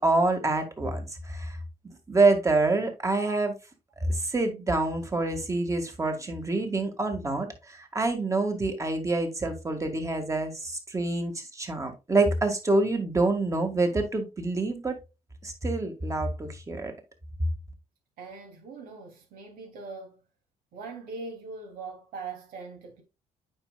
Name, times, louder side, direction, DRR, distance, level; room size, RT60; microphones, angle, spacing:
voice 1, 0.0-1.6 1.8-3.5 4.0-14.9 15.4-16.9, right 2 dB, 20° right, 1.9 m, -27 dB
voice 2, 18.2-20.2 20.7-23.0, right 4 dB, 75° right, 2.9 m, -41 dB
8.8 x 5.4 x 2.4 m
cardioid pair, 90°, 15 cm